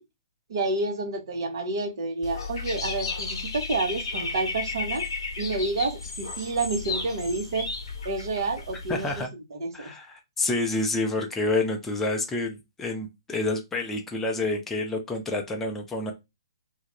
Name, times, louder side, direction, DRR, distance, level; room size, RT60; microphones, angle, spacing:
voice 1, 0.5-5.1 5.4-7.7 8.0-9.2 9.5-9.9, right 3 dB, 55° right, 0.8 m, -29 dB
Dog / Bird, 2.2-9.2, left 4 dB, 60° left, 0.8 m, -34 dB
voice 2, 8.9-9.3 9.7-16.1, left 2 dB, 10° left, 0.5 m, -28 dB
2.4 x 2.1 x 2.9 m
figure-of-eight pair, 125°, 3 cm